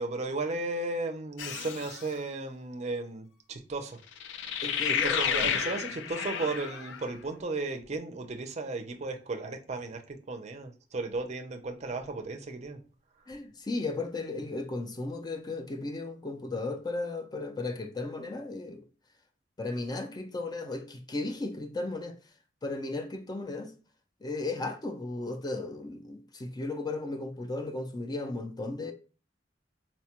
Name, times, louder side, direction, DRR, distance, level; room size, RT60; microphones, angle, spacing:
voice 1, 0.0-4.0 5.0-12.8, right 3 dB, 40° right, 0.5 m, -35 dB
sound 1, 1.4-2.1 4.2-7.1, left 7 dB, 85° left, 0.4 m, -31 dB
voice 2, 4.6-5.4 13.3-18.8 19.6-22.2 22.6-23.7 24.2-28.9, left 2 dB, 20° left, 0.4 m, -35 dB
4.2 x 2.2 x 2.8 m
head